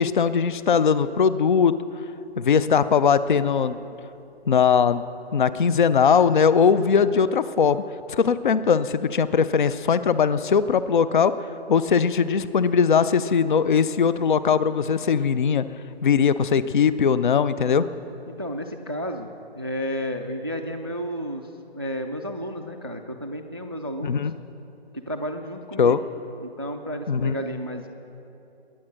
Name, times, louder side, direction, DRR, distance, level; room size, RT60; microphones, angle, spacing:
voice 1, 0.0-1.7 2.4-3.8 4.5-5.0 5.3-7.8 8.1-11.3 11.7-15.6 16.0-17.9 24.0-24.3 25.8-26.0 27.1-27.3, left 6 dB, 50° left, 15 dB, 0.5 m, -20 dB
voice 2, 18.3-24.2 24.9-26.0 26.4-27.9, equal, 25° right, 7 dB, 0.3 m, -32 dB
21.5 x 8.9 x 6.4 m, 2.8 s
figure-of-eight pair, 150°, 32 cm